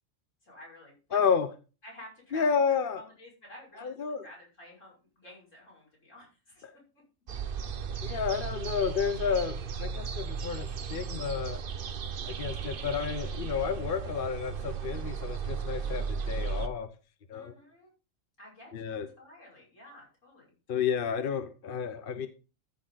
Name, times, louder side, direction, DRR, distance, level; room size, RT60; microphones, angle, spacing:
voice 1, 0.4-1.2 1.8-3.9 4.2-6.6 17.3-17.9 18.4-20.5, left 1 dB, 65° left, -3 dB, 6.2 m, -51 dB
voice 2, 1.1-1.5 2.3-3.0 3.8-4.2 6.6-6.7 8.0-11.6 12.2-16.9 17.3-17.5 18.7-19.1 20.7-22.3, left 6 dB, 50° left, 11 dB, 0.8 m, -31 dB
sound 1, 7.3-16.7, right 6 dB, 50° right, 0.8 m, -35 dB
13.5 x 6.4 x 4.0 m, 0.33 s
omnidirectional pair, 1.4 m